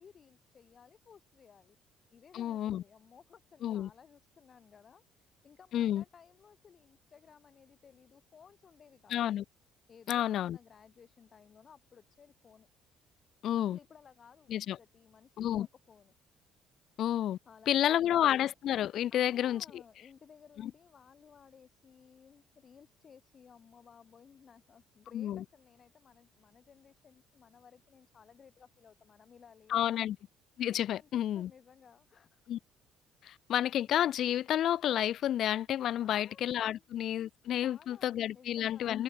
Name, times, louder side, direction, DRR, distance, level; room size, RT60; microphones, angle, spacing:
voice 1, 0.0-1.8 2.1-9.3 9.9-12.7 13.5-16.1 17.5-18.2 19.1-30.0 30.9-31.1 31.3-32.4 36.0-36.8 37.6-38.9, left 7 dB, 45° left, 3.6 m, -58 dB
voice 2, 2.3-2.8 3.6-3.9 5.7-6.0 9.1-9.4 10.1-10.6 13.4-13.8 14.5-14.8 15.4-15.7 17.0-17.4 17.7-19.8 20.6-20.7 25.1-25.4 29.7-30.2 30.6-31.5 32.5-32.6 33.2-39.0, left 11 dB, 65° left, 0.3 m, -30 dB
supercardioid pair, 85°, 0 cm